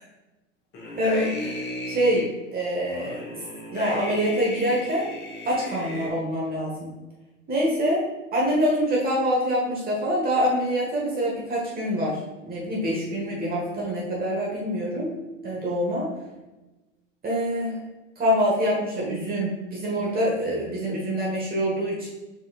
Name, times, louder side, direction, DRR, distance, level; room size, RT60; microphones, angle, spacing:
sound 1, 0.7-2.3 2.9-6.1, left 2 dB, 25° left, 1.1 m, -34 dB
voice 1, 1.0-3.4 3.7-5.1 5.4-6.9 7.5-8.1 8.3-12.2 12.4-15.2 15.4-16.1 17.2-17.8 18.2-22.1, equal, 25° right, -4 dB, 1.4 m, -25 dB
4.7 x 4.2 x 2.4 m, 1.1 s
hypercardioid pair, 105°, 39 cm